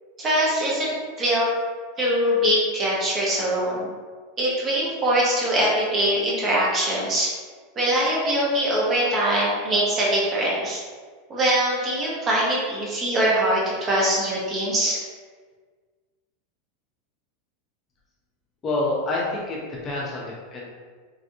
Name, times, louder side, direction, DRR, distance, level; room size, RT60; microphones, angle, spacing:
voice 1, 0.2-1.5 2.0-3.9 4.4-7.3 7.8-10.8 11.3-15.0, right 1 dB, 25° right, -5 dB, 0.9 m, -22 dB
voice 2, 18.6-20.7, left 2 dB, 25° left, -4 dB, 0.5 m, -27 dB
3.3 x 2.5 x 2.6 m, 1.5 s
supercardioid pair, 140°, 0 cm